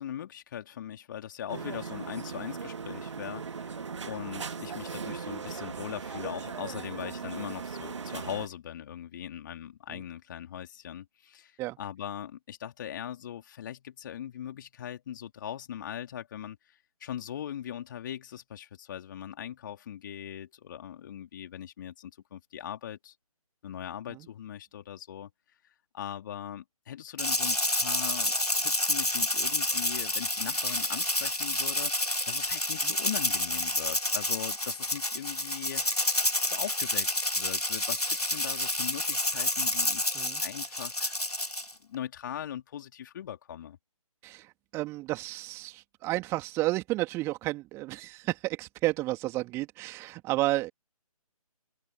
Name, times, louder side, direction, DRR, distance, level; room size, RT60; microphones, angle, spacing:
voice 1, 0.0-23.1 23.6-25.3 25.9-41.2 41.8-43.8, left 10 dB, 35° left, 3.4 m, -40 dB
sound 1, 1.5-8.5, right 5 dB, 50° right, 1.8 m, -38 dB
Rattle (instrument), 27.2-41.7, left 1 dB, 90° left, 3.2 m, -29 dB
voice 2, 44.2-50.7, right 18 dB, 15° right, 2.8 m, -32 dB
open air
figure-of-eight pair, 145°, 19 cm